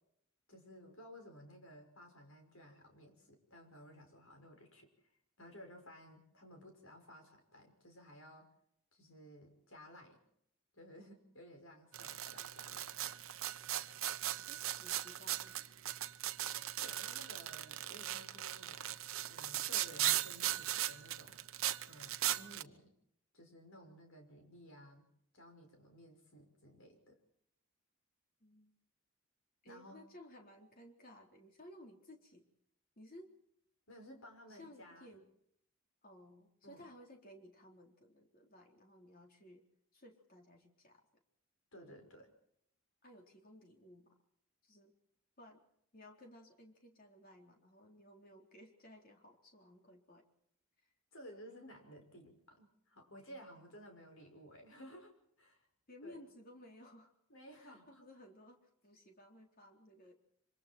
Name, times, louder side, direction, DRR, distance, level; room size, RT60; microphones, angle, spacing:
voice 1, 0.5-4.9 5.4-8.5 8.9-10.2 10.7-13.3 16.8-19.0 19.3-21.4 21.9-22.9 23.3-25.1 25.3-27.2 29.6-30.0 33.9-35.2 36.6-36.9 41.7-42.3 51.1-55.7 56.0-56.2 57.3-58.1, equal, 65° left, 4 dB, 5.9 m, -56 dB
sound 1, 11.9-22.6, right 13 dB, 70° right, 0.9 m, -38 dB
voice 2, 14.2-15.6 28.4-28.7 29.6-32.5 33.0-33.3 34.5-35.3 36.0-39.6 39.9-41.1 43.0-44.1 44.6-44.9 45.4-45.6 45.9-50.2 50.8-50.9 55.9-57.1 57.5-60.1, left 1 dB, 40° left, 2 dB, 4.0 m, -58 dB
26.0 x 25.5 x 4.5 m, 0.73 s
head